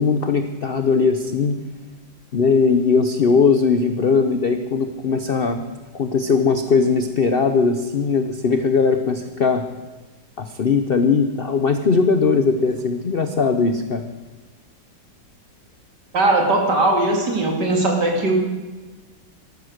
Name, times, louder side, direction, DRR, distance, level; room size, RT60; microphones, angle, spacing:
voice 1, 0.0-1.6 2.3-5.6 5.9-9.6 10.4-14.0, left 5 dB, 55° left, 8 dB, 0.6 m, -19 dB
voice 2, 16.1-18.3, right 2 dB, 65° right, 1 dB, 3.2 m, -19 dB
13.5 x 12.5 x 6.5 m, 1.2 s
omnidirectional pair, 2.0 m